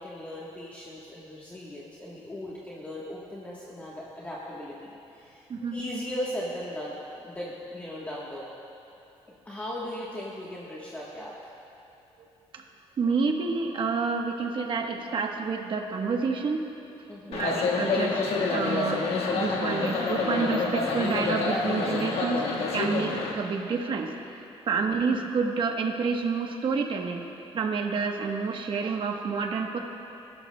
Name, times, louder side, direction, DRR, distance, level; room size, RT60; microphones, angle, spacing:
voice 1, 0.0-8.5 9.4-11.5 17.1-17.4 24.7-25.0, equal, 15° left, -6 dB, 1.2 m, -38 dB
voice 2, 13.0-16.6 17.3-18.2 18.5-19.0 19.3-22.5 22.7-24.1 24.7-27.2 27.5-29.8, right 5 dB, 50° right, 3 dB, 1.1 m, -28 dB
sound 1, 17.3-23.3, left 3 dB, 65° left, 1.4 m, -27 dB
19.5 x 12.0 x 2.2 m, 2.8 s
cardioid pair, 140°, 11 cm